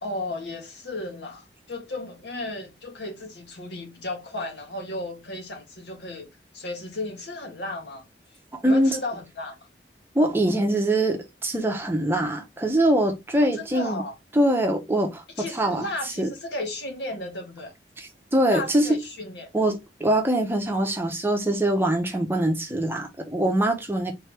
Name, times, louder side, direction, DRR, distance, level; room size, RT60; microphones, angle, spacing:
voice 1, 0.0-6.3 6.5-8.0 8.6-9.5 13.5-14.1 15.4-17.7 18.5-19.5, left 2 dB, 75° left, 1.3 m, -34 dB
voice 2, 8.5-9.0 10.1-14.0 14.3-15.2 15.5-15.9 16.2-16.3 18.0-19.0 19.5-24.1, right 1 dB, 15° right, 0.8 m, -23 dB
3.7 x 3.3 x 3.3 m
head